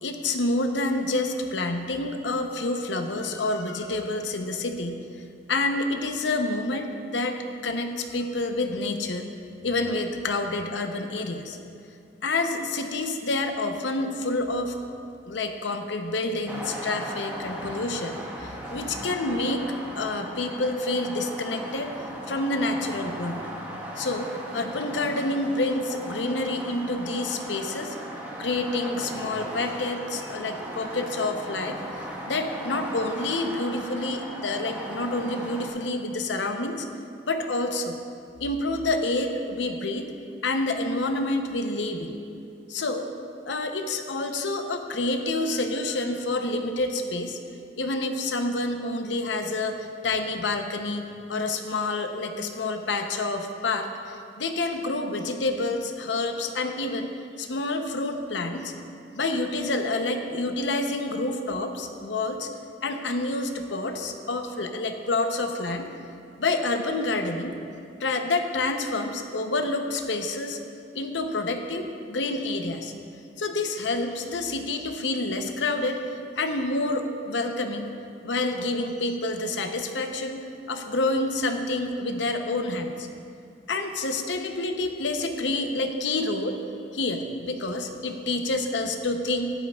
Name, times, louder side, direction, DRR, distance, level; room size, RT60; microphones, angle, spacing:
voice 1, 0.0-5.0 5.5-9.3 9.6-11.6 12.2-14.7 15.3-19.7 20.0-21.9 22.3-23.5 24.0-28.0 28.4-31.8 32.3-36.9 37.2-38.0 38.4-40.1 40.4-42.1 42.7-43.1 43.5-47.4 47.8-58.7 59.1-62.5 62.8-65.9 66.4-67.6 68.0-70.6 70.9-72.9 73.4-76.0 76.4-77.9 78.2-83.1 83.7-86.6 86.9-89.5, left 2 dB, 80° left, 5 dB, 0.8 m, -28 dB
sound 1, 16.5-35.7, equal, 10° right, 1.3 m, -37 dB
14.0 x 10.5 x 2.4 m, 2.5 s
head